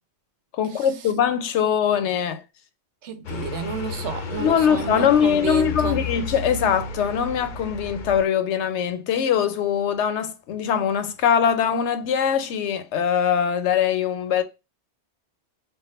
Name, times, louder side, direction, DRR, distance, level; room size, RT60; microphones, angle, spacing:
voice 1, 0.6-2.4 4.4-14.4, left 8 dB, 85° left, 0.9 m, -22 dB
voice 2, 3.0-6.1, right 6 dB, 80° right, 1.0 m, -31 dB
sound 1, 3.2-8.2, left 5 dB, 55° left, 0.6 m, -32 dB
3.4 x 2.1 x 4.1 m
omnidirectional pair, 1.1 m